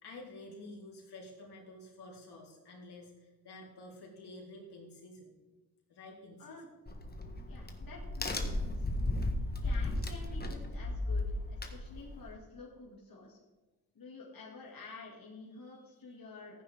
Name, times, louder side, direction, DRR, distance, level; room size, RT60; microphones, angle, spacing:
voice 1, 0.0-5.4 5.9-6.6 15.6-16.2, left 2 dB, 85° left, -2 dB, 3.8 m, -50 dB
Crack, 6.9-12.3, left 2 dB, 25° left, 1.5 m, -35 dB
voice 2, 7.5-8.9 9.6-13.4 13.9-16.6, left 3 dB, 60° left, -4 dB, 2.4 m, -50 dB
15.0 x 9.5 x 3.6 m, 1.2 s
wide cardioid pair, 110°, 39 cm